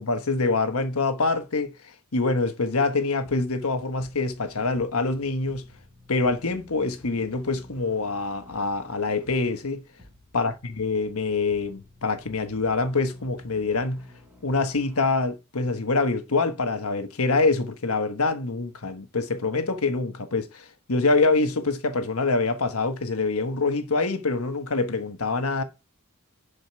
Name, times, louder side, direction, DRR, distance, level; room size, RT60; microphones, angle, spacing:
voice 1, 0.0-1.7 2.1-5.6 6.1-9.8 10.3-14.0 14.4-25.6, left 3 dB, 70° left, 1.3 m, -25 dB
sound 1, 3.2-15.2, left 1 dB, 10° right, 5.1 m, -53 dB
11.0 x 5.2 x 4.7 m
head